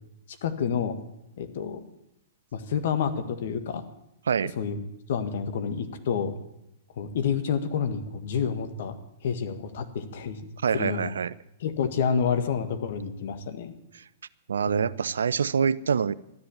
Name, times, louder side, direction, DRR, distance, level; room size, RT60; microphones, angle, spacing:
voice 1, 0.4-0.9 1.4-1.8 2.5-3.8 4.6-4.8 5.1-6.3 7.0-8.9 9.2-10.4 10.7-11.1 11.6-13.7 14.7-14.9, left 7 dB, 60° left, 9 dB, 1.6 m, -28 dB
voice 2, 10.6-11.3 13.9-14.0 14.5-16.1, right 6 dB, 75° right, 18 dB, 0.5 m, -25 dB
13.0 x 10.5 x 8.5 m, 0.82 s
hypercardioid pair, 110°, 0 cm